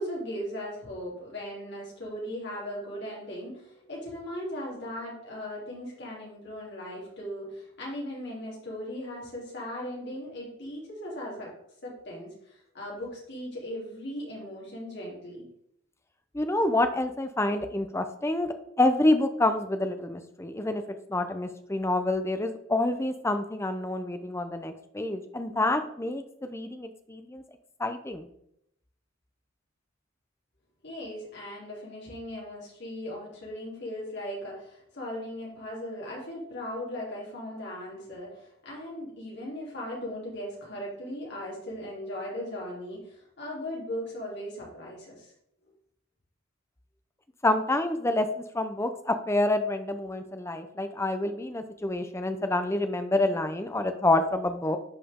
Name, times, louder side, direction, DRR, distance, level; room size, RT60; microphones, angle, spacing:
voice 1, 0.0-11.5 11.8-15.4 30.8-45.3, equal, 55° left, -4 dB, 3.2 m, -38 dB
voice 2, 16.3-20.8 21.1-27.4 27.8-28.3 47.4-54.8, left 2 dB, 15° left, 8 dB, 0.6 m, -27 dB
10.0 x 5.0 x 3.7 m, 0.74 s
head